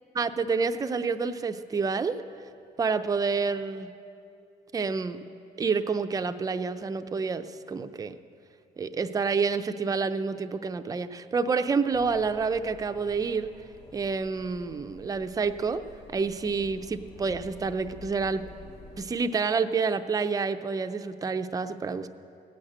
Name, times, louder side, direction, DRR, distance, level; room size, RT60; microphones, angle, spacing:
voice 1, 0.2-2.2 2.8-3.9 4.7-5.2 5.6-8.1 8.8-13.5 13.9-15.8 16.1-18.4 19.0-22.1, right 5 dB, 20° right, 8 dB, 0.5 m, -28 dB
sound 1, 11.9-19.1, left 2 dB, 35° left, 1.9 m, -49 dB
17.0 x 6.4 x 8.7 m, 2.6 s
cardioid pair, 110°, 17 cm